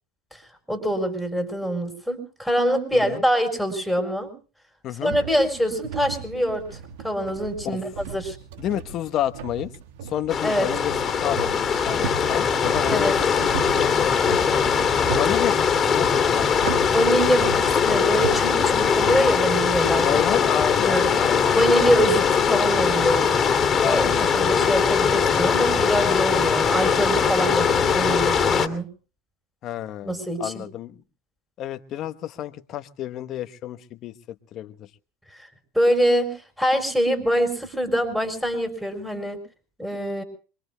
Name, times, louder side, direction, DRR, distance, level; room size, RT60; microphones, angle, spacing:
voice 1, 0.7-4.3 5.0-6.8 7.0-8.4 10.4-10.7 12.9-13.2 16.8-21.1 21.6-23.3 23.8-28.9 30.0-30.6 35.7-36.3 36.6-39.4 39.8-40.2, equal, 5° right, 3 dB, 4.4 m, -24 dB
voice 2, 4.8-5.1 7.6-7.8 8.6-9.7 10.0-10.9 11.2-13.1 13.4-14.5 15.1-15.6 15.9-17.1 20.0-21.6 23.8-24.3 29.6-31.0 31.6-34.1 34.5-34.9, left 11 dB, 50° left, 10 dB, 1.2 m, -30 dB
sound 1, 5.1-18.4, right 6 dB, 75° right, 1.5 m, -37 dB
sound 2, 10.3-28.7, left 6 dB, 30° left, 2.5 m, -21 dB
26.0 x 22.5 x 2.3 m, 0.36 s
hypercardioid pair, 90°, 0 cm